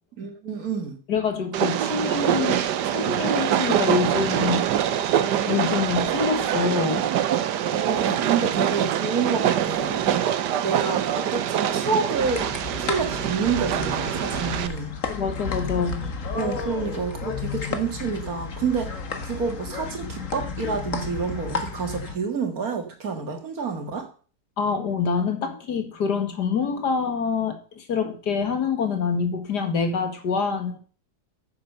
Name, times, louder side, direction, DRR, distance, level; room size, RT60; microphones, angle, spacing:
voice 1, 0.2-1.0 7.7-10.3 10.6-12.5 12.8-15.0 16.3-18.9 19.2-24.1, right 5 dB, 60° right, 2.2 m, -28 dB
voice 2, 1.1-4.7 5.5-7.1 15.1-16.1 24.6-30.8, left 5 dB, 80° left, 2.3 m, -26 dB
Train, 1.5-14.7, right 10 dB, 85° right, 1.4 m, -24 dB
sound 1, 12.1-22.2, left 5 dB, 50° left, 1.7 m, -32 dB
9.6 x 7.3 x 6.6 m
omnidirectional pair, 1.8 m